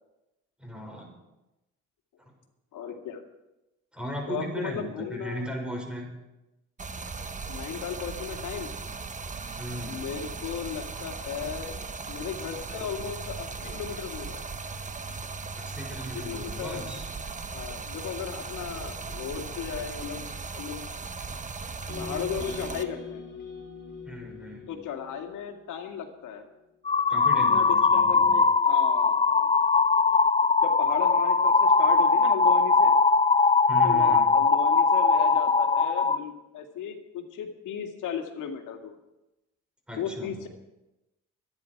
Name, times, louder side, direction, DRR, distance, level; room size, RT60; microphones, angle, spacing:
voice 1, 0.6-1.1 2.2-2.3 3.9-6.1 9.6-10.1 15.5-17.1 24.0-24.7 27.1-28.4 33.7-34.4 39.9-40.3, equal, 5° right, 0 dB, 5.9 m, -37 dB
voice 2, 2.7-3.2 4.3-5.5 7.5-8.7 9.9-14.4 16.1-16.9 17.5-20.3 20.5-20.9 21.9-23.3 24.7-26.5 27.5-29.5 30.6-32.9 33.8-39.0 40.0-40.5, left 8 dB, 85° left, 4 dB, 2.1 m, -36 dB
Stream, 6.8-22.8, right 4 dB, 25° right, 1.1 m, -38 dB
sound 1, 21.9-26.0, left 3 dB, 40° left, 6.1 m, -41 dB
sound 2, 26.9-36.2, left 4 dB, 20° left, 0.7 m, -21 dB
24.5 x 9.9 x 4.7 m, 0.97 s
cardioid pair, 90°, 30 cm